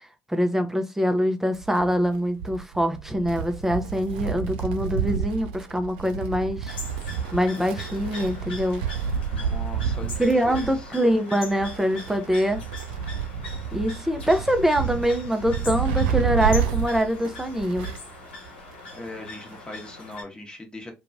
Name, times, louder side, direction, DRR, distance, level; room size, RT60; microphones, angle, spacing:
voice 1, 0.3-6.8 7.3-8.8 10.2-12.6 13.7-17.9, equal, 5° right, 0.6 m, -24 dB
Wind, 1.5-18.1 18.4-18.5 19.5-19.6, right 7 dB, 75° right, 0.4 m, -30 dB
sound 1, 6.7-20.2, left 3 dB, 85° left, 0.8 m, -41 dB
voice 2, 9.3-10.9 18.9-20.9, left 2 dB, 15° left, 1.0 m, -40 dB
2.8 x 2.3 x 2.5 m
hypercardioid pair, 55°, 6 cm